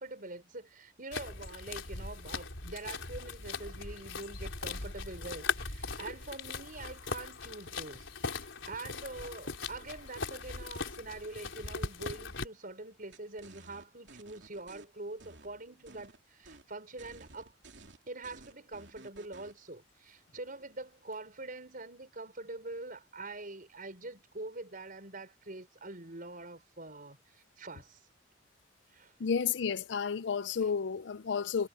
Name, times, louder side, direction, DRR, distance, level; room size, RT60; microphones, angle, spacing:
voice 1, 0.0-17.5 18.1-28.0 28.9-29.1 30.6-30.7, right 2 dB, 50° right, 5.7 m, -45 dB
sound 1, 1.1-12.5, left 4 dB, 90° left, 4.0 m, -39 dB
sound 2, 13.1-14.8 15.2-16.2 16.4-16.7 17.0-19.5, right 2 dB, 65° right, 3.1 m, -54 dB
voice 2, 29.2-31.7, left 6 dB, 65° left, 0.5 m, -31 dB
head